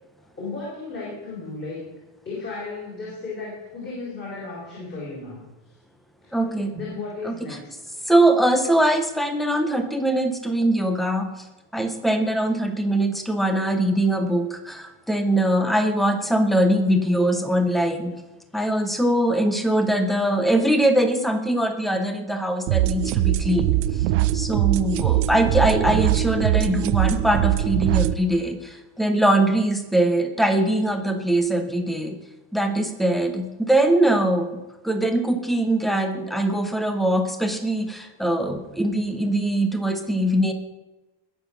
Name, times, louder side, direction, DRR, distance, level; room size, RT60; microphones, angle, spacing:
voice 1, 0.4-1.9 2.2-5.4 6.2-6.4 6.7-7.7, left 3 dB, 20° left, -6 dB, 4.6 m, -34 dB
voice 2, 6.3-6.7 7.2-7.3 8.1-11.3 11.7-18.1 18.5-23.8 24.3-32.2 32.5-40.5, right 1 dB, ahead, 7 dB, 0.4 m, -22 dB
sound 1, 22.7-28.1, right 15 dB, 65° right, 0.7 m, -22 dB
20.5 x 7.0 x 5.9 m, 1.1 s
cardioid pair, 170°, 49 cm